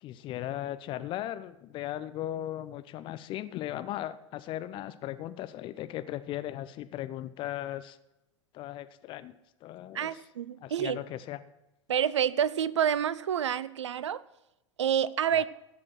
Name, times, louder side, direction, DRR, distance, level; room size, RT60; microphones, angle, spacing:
voice 1, 0.0-8.0 8.5-10.2 10.6-11.4 15.3-15.4, left 13 dB, 30° left, 13 dB, 0.7 m, -37 dB
voice 2, 9.9-11.0 11.9-14.2 14.8-15.5, right 9 dB, 65° right, 19 dB, 0.5 m, -28 dB
15.5 x 6.2 x 6.1 m, 0.91 s
figure-of-eight pair, 90°, 16 cm